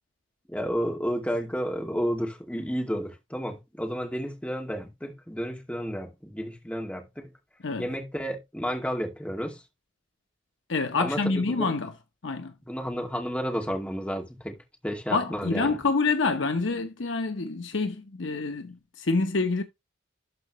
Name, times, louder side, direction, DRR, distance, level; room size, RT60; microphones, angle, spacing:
voice 1, 0.5-7.3 7.8-9.6 11.0-11.2 11.5-11.7 12.7-14.5 14.8-15.7, equal, 5° left, 2.3 m, -31 dB
voice 2, 10.7-12.0 12.2-12.5 15.1-19.6, left 3 dB, 75° left, 0.9 m, -27 dB
12.5 x 4.9 x 3.1 m
head